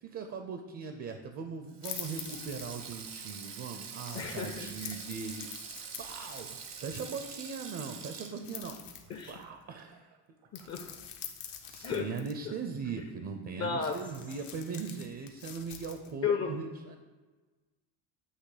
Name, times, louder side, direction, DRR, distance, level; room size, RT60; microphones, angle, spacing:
voice 1, 0.0-5.5 6.0-10.1 11.7-17.0, right 5 dB, 35° right, 6 dB, 0.5 m, -40 dB
Sink (filling or washing), 1.7-10.2 10.4-10.7 11.8-12.1, right 6 dB, 75° right, 1.1 m, -45 dB
sound 1, 1.8-3.1 4.1-7.4 8.4-9.5 10.5-12.3 13.8-16.1, left 9 dB, 75° left, 0.9 m, -46 dB
voice 2, 4.1-4.9 9.1-9.3 10.5-10.9 11.8-12.1 12.5-12.6 13.6-14.0 16.2-16.5, left 6 dB, 35° left, 4 dB, 0.6 m, -33 dB
8.3 x 3.0 x 4.9 m, 1.3 s
cardioid pair, 120°, 42 cm